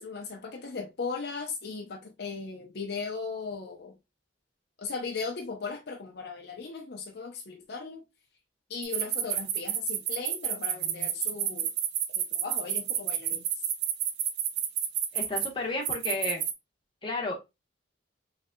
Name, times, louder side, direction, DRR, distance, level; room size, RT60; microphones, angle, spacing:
voice 1, 0.0-4.0 4.8-8.0 8.7-11.7 12.1-13.5, left 4 dB, 55° left, 0.6 m, -37 dB
sound 1, 8.8-15.5 15.8-16.5, right 10 dB, 55° right, 0.5 m, -29 dB
voice 2, 15.1-16.4 17.0-17.4, left 2 dB, 25° left, 0.9 m, -32 dB
3.8 x 3.2 x 2.2 m
head